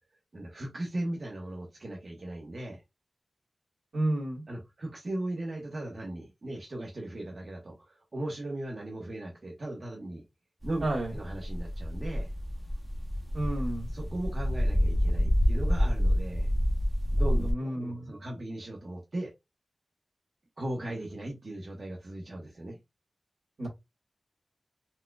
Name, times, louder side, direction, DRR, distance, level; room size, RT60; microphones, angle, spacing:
voice 1, 0.3-2.8 4.5-10.2 10.6-10.9 11.1-12.3 13.9-16.5 17.1-19.3 20.6-22.8, right 1 dB, 60° right, 1.0 m, -37 dB
voice 2, 3.9-4.4 10.8-11.1 13.3-13.9 17.4-18.1 23.6-23.7, right 1 dB, 80° right, 1.6 m, -31 dB
sound 1, 10.6-17.5, equal, 20° right, 0.9 m, -28 dB
4.2 x 2.3 x 2.3 m
cardioid pair, 55°, 0 cm